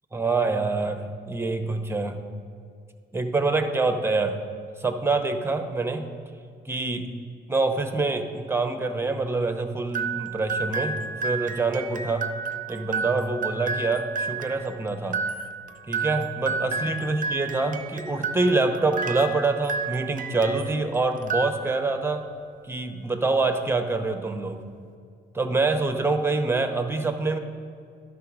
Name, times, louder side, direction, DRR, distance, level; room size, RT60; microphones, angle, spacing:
voice 1, 0.1-2.2 3.1-4.4 4.8-6.1 6.6-7.1 7.5-11.0 11.2-12.3 12.7-15.2 15.9-22.2 22.6-24.6 25.3-27.4, right 3 dB, 10° right, 6 dB, 0.8 m, -25 dB
sound 1, 9.9-20.8 21.2-22.0, right 4 dB, 45° right, 0.5 m, -31 dB
11.0 x 4.0 x 6.0 m, 2.2 s
cardioid pair, 90°, 20 cm